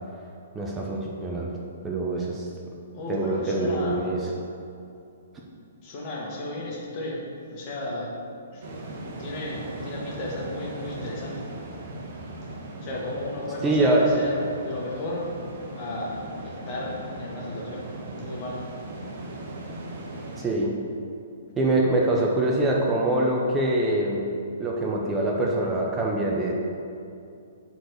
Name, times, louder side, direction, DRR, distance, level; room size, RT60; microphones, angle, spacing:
voice 1, 0.5-1.5 1.8-2.5 3.1-4.3 13.6-14.1 20.4-20.7 21.6-24.3 24.6-26.5, right 2 dB, 15° right, -2 dB, 0.8 m, -24 dB
voice 2, 2.9-4.1 5.8-7.3 7.5-8.1 8.5-8.6 9.0-11.5 12.8-15.3 15.7-18.6, left 1 dB, 35° left, -3 dB, 1.9 m, -34 dB
sound 1, 8.6-20.5, right 1 dB, 50° right, 1.4 m, -38 dB
8.0 x 4.2 x 6.5 m, 2.6 s
figure-of-eight pair, 120°, 0 cm